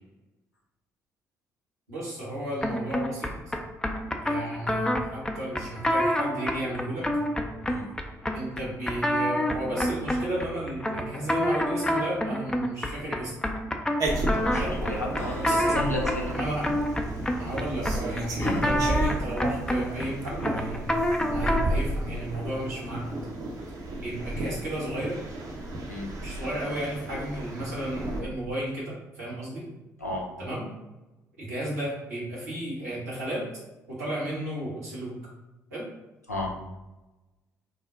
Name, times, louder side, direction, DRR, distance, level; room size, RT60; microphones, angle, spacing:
voice 1, 1.9-3.3 4.2-7.1 8.3-13.3 14.6-14.7 15.4-15.8 16.3-16.6 17.4-23.1 24.0-25.2 26.2-29.6 30.4-30.6 31.4-33.5 33.9-35.2 35.7-35.9, right 1 dB, 80° right, -7 dB, 1.0 m, -33 dB
sound 1, 2.6-21.8, equal, 10° left, 0.4 m, -28 dB
sound 2, 14.0-28.2, right 1 dB, 45° right, 0.6 m, -33 dB
voice 2, 14.3-16.4 25.9-26.1 30.0-30.3 36.3-36.5, left 2 dB, 90° left, -2 dB, 0.4 m, -32 dB
Yell, 14.5-20.0, left 1 dB, 30° left, 0.8 m, -39 dB
2.5 x 2.1 x 3.7 m, 1.0 s
figure-of-eight pair, 45°, 8 cm